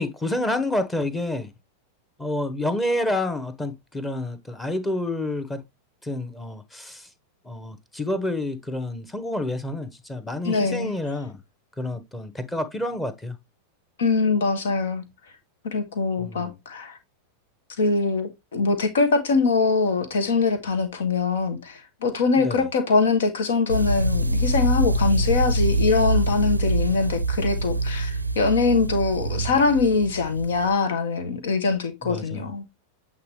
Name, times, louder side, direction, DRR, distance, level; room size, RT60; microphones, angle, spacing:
voice 1, 0.0-1.5 2.2-5.6 6.0-7.1 7.4-11.4 11.8-13.4 16.2-16.5 22.4-22.6 29.2-29.6 32.0-32.5, left 1 dB, 10° left, 1.2 m, -29 dB
voice 2, 10.4-10.9 14.0-15.0 15.7-17.0 17.8-32.6, left 4 dB, 60° left, 1.6 m, -23 dB
sound 1, 23.7-30.7, right 1 dB, 85° right, 0.5 m, -24 dB
8.6 x 4.0 x 3.1 m
figure-of-eight pair, 90°, 0 cm